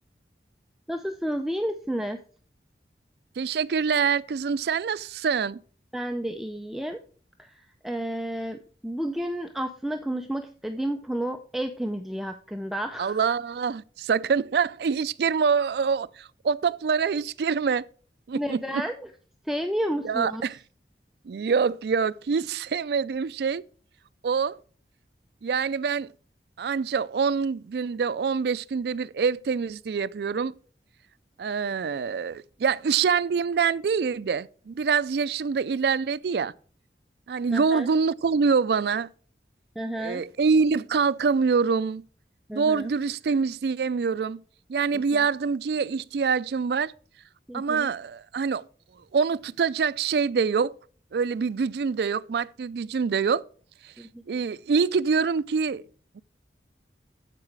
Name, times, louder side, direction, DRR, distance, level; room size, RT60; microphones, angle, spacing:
voice 1, 0.9-2.2 5.9-7.0 7.4-13.2 18.3-19.1 19.4-20.4 37.5-37.9 39.8-40.2 42.5-42.9 44.9-45.0 47.5-47.9 54.0-54.2, right 1 dB, ahead, 0.5 m, -31 dB
voice 2, 3.4-5.6 13.0-17.9 18.3-18.8 20.0-20.6 21.3-23.6 24.2-24.6 25.4-26.1 26.6-30.5 31.4-36.5 37.3-39.1 40.0-42.0 42.5-44.4 44.7-46.9 47.5-48.6 49.1-50.7 51.1-53.4 54.3-55.9 56.2-56.3, right 5 dB, 65° right, 0.4 m, -25 dB
13.5 x 4.9 x 4.5 m
head